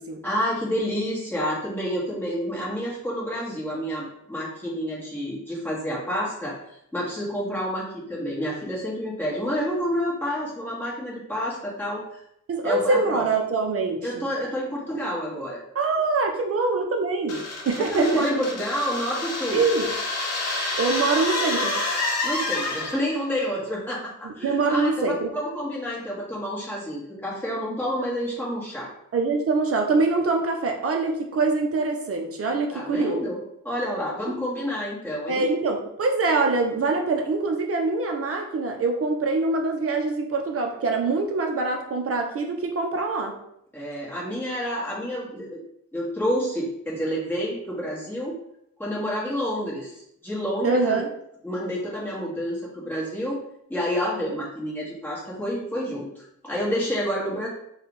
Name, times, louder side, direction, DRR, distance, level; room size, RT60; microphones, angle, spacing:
voice 1, 0.2-6.5 6.9-12.0 12.6-13.2 14.0-15.6 17.8-19.6 22.2-28.9 32.7-33.4 33.6-35.5 43.7-45.6 45.9-48.4 48.8-51.0 51.4-53.4 53.7-57.5, equal, 5° left, -7 dB, 1.4 m, -29 dB
voice 2, 12.5-14.3 15.7-18.2 19.5-19.9 20.8-21.8 24.2-25.3 29.1-33.2 35.3-43.4 50.6-51.1, right 3 dB, 45° right, 3 dB, 0.7 m, -24 dB
sound 1, 17.3-23.2, left 2 dB, 55° left, 0.8 m, -28 dB
4.4 x 2.4 x 3.9 m, 0.76 s
wide cardioid pair, 155°, 31 cm